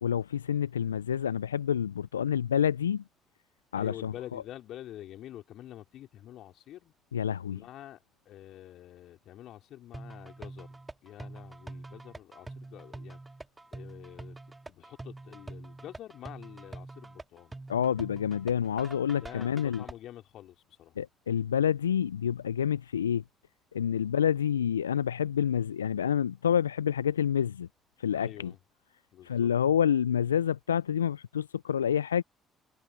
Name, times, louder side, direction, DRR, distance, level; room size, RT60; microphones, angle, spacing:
voice 1, 0.0-3.0 3.7-4.4 7.1-7.6 17.7-19.8 21.0-23.2 23.7-27.7 28.0-28.5 29.2-32.2, left 8 dB, 85° left, 0.4 m, -28 dB
voice 2, 3.8-6.9 7.5-8.0 8.3-13.2 13.7-14.4 14.7-17.5 19.2-20.9 28.1-28.6 29.1-29.5, left 13 dB, 60° left, 4.1 m, -47 dB
sound 1, 9.9-19.9, right 2 dB, 15° right, 1.9 m, -45 dB
figure-of-eight pair, 50°, 0 cm